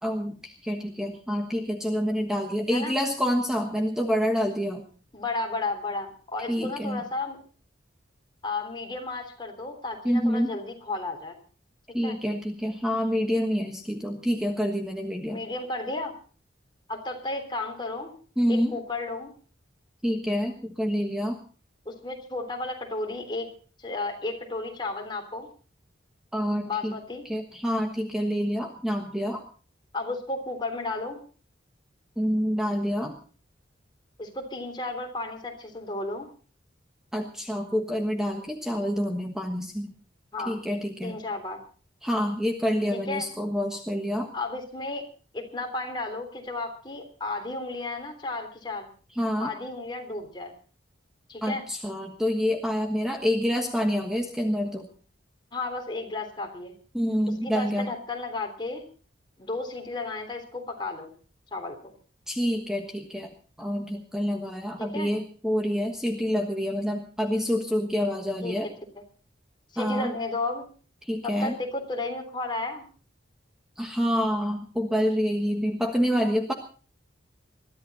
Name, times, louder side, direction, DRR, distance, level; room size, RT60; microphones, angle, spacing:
voice 1, 0.0-4.8 6.5-7.0 10.0-10.5 11.9-15.4 18.4-18.8 20.0-21.4 26.3-27.0 27.2-29.4 32.2-33.2 37.1-39.9 40.5-41.2 42.0-44.3 49.1-49.5 51.4-54.9 56.9-57.9 62.3-63.3 63.6-68.7 69.8-70.1 71.0-71.6 73.8-76.5, equal, 5° right, 3 dB, 1.4 m, -27 dB
voice 2, 5.1-7.4 8.4-11.4 12.0-12.2 15.3-16.1 16.9-18.1 18.5-19.3 21.8-23.5 23.8-25.5 26.6-27.2 29.9-31.2 34.2-36.3 40.3-40.6 41.0-41.6 42.9-43.3 44.3-45.0 45.3-48.9 49.4-50.5 51.3-51.6 55.5-56.7 57.4-58.8 59.4-61.1 61.5-61.9 64.8-65.1 68.4-68.6 69.7-70.6 71.2-72.9, left 2 dB, 25° left, 3 dB, 3.5 m, -33 dB
22.0 x 13.5 x 4.2 m, 0.40 s
head